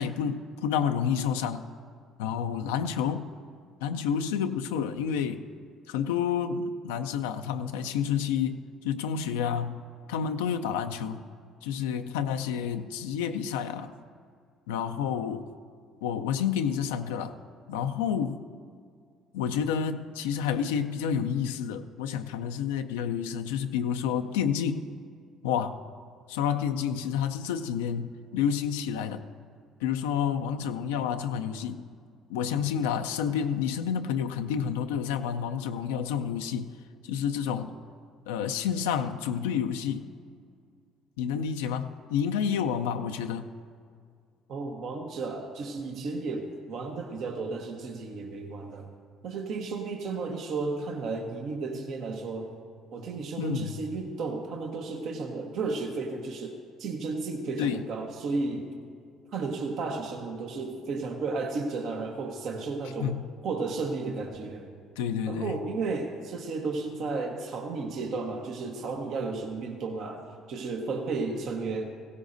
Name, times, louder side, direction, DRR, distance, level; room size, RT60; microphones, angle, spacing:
voice 1, 0.0-1.6 2.2-3.3 3.8-5.4 5.9-9.8 10.1-11.2 11.6-13.9 14.7-15.4 16.0-17.3 17.7-18.4 19.3-24.8 25.4-25.8 26.3-29.2 29.8-31.8 32.3-36.7 37.0-37.7 38.3-40.1 41.2-43.5 53.4-53.7 57.6-57.8 63.0-63.2 65.0-65.5, left 8 dB, 90° left, 7 dB, 0.5 m, -29 dB
voice 2, 44.5-48.9 49.2-52.5 52.9-58.7 59.3-63.1 63.4-64.7 65.3-71.8, right 3 dB, 65° right, 2 dB, 1.1 m, -33 dB
16.5 x 15.0 x 2.6 m, 2.2 s
supercardioid pair, 65°, 0 cm